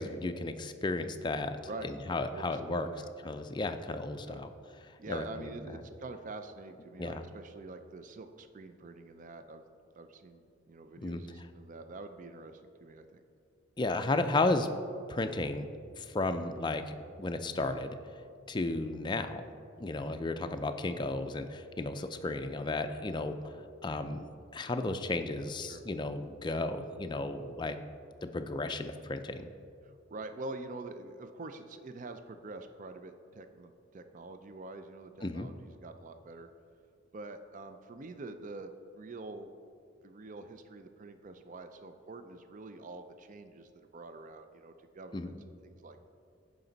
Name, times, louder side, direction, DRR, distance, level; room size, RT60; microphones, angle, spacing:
voice 1, 0.0-2.9 3.2-4.5 4.9-5.5 7.0-7.2 11.0-11.2 13.8-14.7 15.1-15.7 16.0-17.9 18.5-19.5 19.8-24.3 24.5-27.8 28.2-29.5 35.2-35.5 45.1-45.3, left 2 dB, 20° left, 8 dB, 0.4 m, -34 dB
voice 2, 1.7-3.1 4.2-4.4 5.0-9.6 10.0-13.2 25.6-25.8 29.8-36.5 37.1-39.5 40.0-45.3 45.6-46.1, right 2 dB, 40° right, 8 dB, 0.4 m, -46 dB
15.0 x 5.2 x 4.0 m, 2.4 s
head